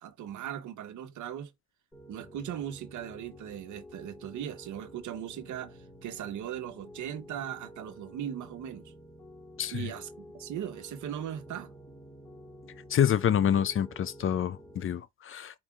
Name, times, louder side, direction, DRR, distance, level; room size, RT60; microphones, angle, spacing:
voice 1, 0.0-1.5 2.1-8.9 9.7-11.7, right 10 dB, 75° right, 1.0 m, -38 dB
Piano, 1.9-14.8, equal, 10° left, 1.8 m, -50 dB
voice 2, 9.6-9.9 12.9-15.6, left 9 dB, 45° left, 0.5 m, -27 dB
4.6 x 2.7 x 3.6 m
cardioid pair, 90°, 30 cm